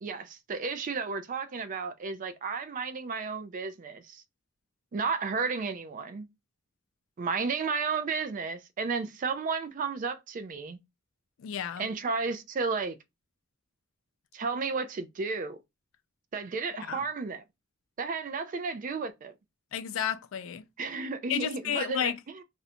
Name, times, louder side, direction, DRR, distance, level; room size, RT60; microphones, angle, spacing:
voice 1, 0.0-4.2 4.9-6.3 7.2-10.8 11.8-13.0 14.3-15.6 16.3-17.4 18.0-19.3 20.8-22.4, right 4 dB, 40° right, 0.3 m, -33 dB
voice 2, 11.4-11.9 16.9-17.0 19.7-20.7 21.3-22.2, left 9 dB, 70° left, 0.3 m, -32 dB
2.5 x 2.1 x 2.7 m
head